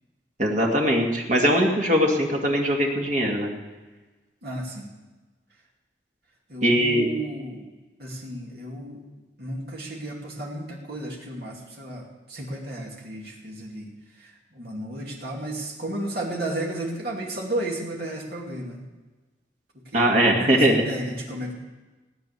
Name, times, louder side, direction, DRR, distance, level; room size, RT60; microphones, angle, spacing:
voice 1, 0.4-3.5 6.6-7.1 19.9-20.7, equal, 45° right, 0 dB, 2.2 m, -21 dB
voice 2, 4.4-4.9 6.5-7.7 8.0-9.0 9.4-13.9 14.2-18.8 19.9-21.5, right 1 dB, 60° right, -2 dB, 2.7 m, -33 dB
17.0 x 9.4 x 6.9 m, 1.2 s
head